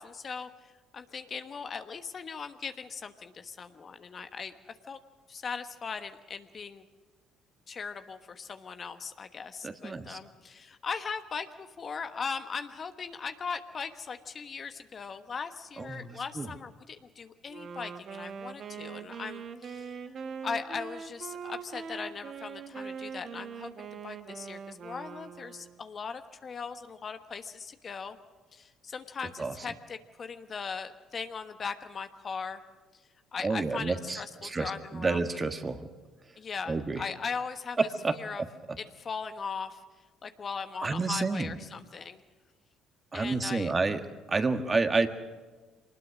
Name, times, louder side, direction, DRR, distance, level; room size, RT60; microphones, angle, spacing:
voice 1, 0.0-5.0 5.3-6.8 7.7-20.0 20.4-28.2 28.5-32.6 33.3-35.2 36.4-37.8 38.2-38.4 38.8-39.8 40.2-42.2 43.1-43.7, left 5 dB, 45° left, 9 dB, 1.2 m, -39 dB
voice 2, 9.6-10.2 15.8-16.5 29.4-29.5 33.4-35.9 36.7-37.1 37.8-38.4 40.8-41.5 43.1-44.0 44.3-45.1, right 3 dB, 30° right, 7 dB, 1.7 m, -29 dB
Wind instrument woodwind instrument, 17.5-25.8, right 6 dB, 55° right, 1.3 m, -42 dB
24.0 x 20.0 x 6.4 m, 1.3 s
hypercardioid pair, 60°, 0 cm